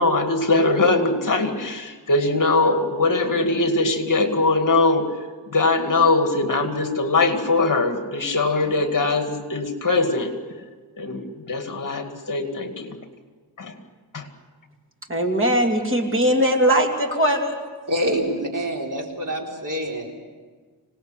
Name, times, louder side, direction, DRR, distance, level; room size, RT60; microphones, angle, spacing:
voice 1, 0.0-10.3 11.0-13.0 13.6-13.7 14.1-14.3, left 3 dB, 45° left, 5 dB, 2.4 m, -21 dB
voice 2, 15.1-17.6, equal, 30° right, 2 dB, 2.8 m, -20 dB
voice 3, 17.9-20.1, equal, 45° right, 0 dB, 4.2 m, -26 dB
26.5 x 19.0 x 8.4 m, 1.5 s
wide cardioid pair, 125°, 42 cm